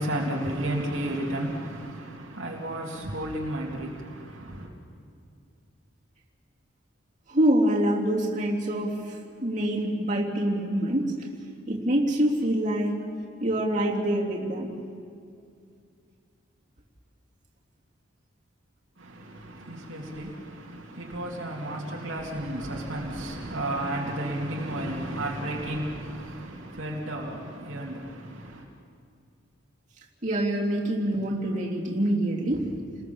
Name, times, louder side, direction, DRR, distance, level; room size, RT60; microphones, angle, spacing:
voice 1, 0.0-4.7 19.0-28.6, right 1 dB, 70° right, 2.6 m, -33 dB
voice 2, 7.3-11.3 11.7-13.0 13.4-14.7 30.2-32.7, right 1 dB, 35° right, 3.4 m, -25 dB
29.5 x 20.5 x 7.2 m
head